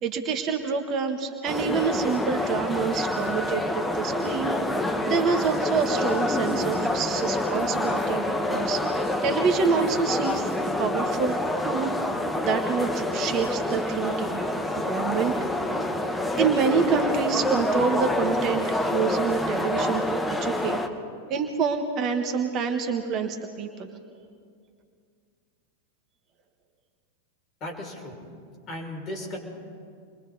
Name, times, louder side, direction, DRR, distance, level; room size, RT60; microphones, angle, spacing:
voice 1, 0.0-4.5 5.1-10.5 10.8-11.4 11.6-11.9 12.4-14.4 14.8-15.3 16.4-20.8 21.3-23.9, right 6 dB, 35° right, 5 dB, 1.6 m, -27 dB
sound 1, 1.5-20.9, left 1 dB, 5° left, 1.4 m, -27 dB
voice 2, 27.6-28.2 28.7-29.4, left 1 dB, 35° left, 0 dB, 6.0 m, -35 dB
29.0 x 22.5 x 4.1 m, 2.2 s
figure-of-eight pair, 90°, 0 cm